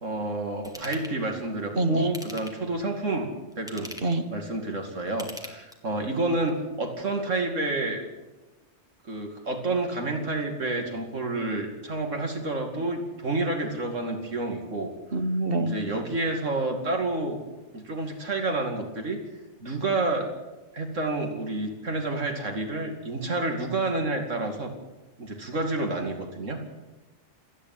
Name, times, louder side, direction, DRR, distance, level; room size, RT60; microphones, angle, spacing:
voice 1, 0.0-3.3 3.6-3.9 4.3-8.0 9.1-14.9 15.6-17.4 17.7-19.2 19.6-20.3 20.7-24.7 25.2-26.6, right 2 dB, 80° right, 3 dB, 2.8 m, -29 dB
Ratchet pawl / Tools, 0.6-1.2 2.0-2.7 3.5-4.2 5.1-6.0 6.5-6.6, equal, 5° right, 2.7 m, -42 dB
voice 2, 1.7-2.1 4.0-4.2 15.1-15.8, right 2 dB, 50° right, 8 dB, 1.6 m, -25 dB
27.5 x 10.5 x 9.5 m, 1.1 s
omnidirectional pair, 1.3 m